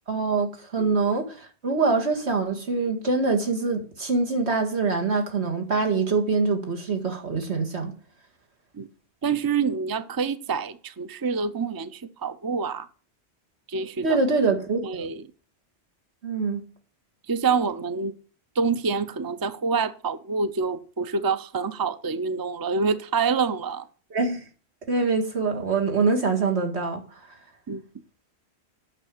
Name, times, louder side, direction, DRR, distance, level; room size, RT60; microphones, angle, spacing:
voice 1, 0.1-7.9 14.0-15.1 16.2-16.6 24.1-24.4 24.9-27.0, right 4 dB, 80° right, 2.3 m, -24 dB
voice 2, 9.2-12.9 13.7-14.2 14.8-15.2 17.3-18.1 18.6-23.9 27.7-27.8, right 5 dB, 25° right, 0.6 m, -27 dB
9.0 x 6.5 x 8.3 m
omnidirectional pair, 1.1 m